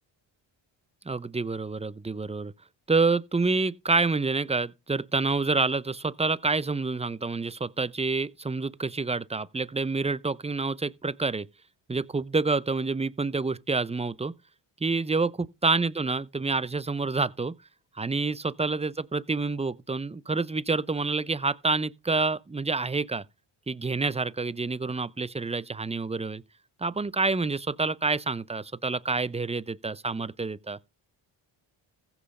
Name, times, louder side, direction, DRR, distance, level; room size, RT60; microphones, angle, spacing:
voice 1, 1.1-2.5 2.9-11.5 11.9-14.3 14.8-15.3 15.6-17.5 18.0-23.2 23.7-26.4 26.8-30.8, right 3 dB, 15° right, 0.7 m, -28 dB
15.0 x 5.8 x 5.4 m
supercardioid pair, 65°, 49 cm